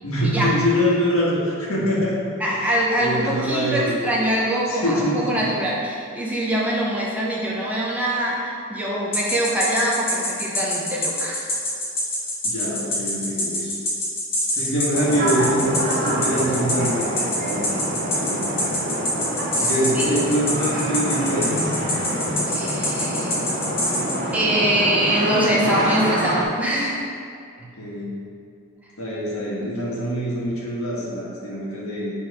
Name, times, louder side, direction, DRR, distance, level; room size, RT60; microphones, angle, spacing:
voice 1, 0.0-2.6 3.0-4.1 4.7-5.5 12.4-13.7 14.5-17.1 17.4-17.7 18.1-18.4 19.6-21.7 27.8-28.1 29.0-32.1, equal, 75° left, -5 dB, 1.4 m, -24 dB
voice 2, 2.4-11.4 19.5-19.7 19.9-20.1 22.5-23.5 24.3-27.0, right 1 dB, 5° right, -5 dB, 0.7 m, -23 dB
sound 1, 9.1-24.2, left 1 dB, 25° left, 1.1 m, -24 dB
sound 2, 14.9-26.4, right 1 dB, 40° right, 1.2 m, -26 dB
7.3 x 3.1 x 4.7 m, 2.4 s
head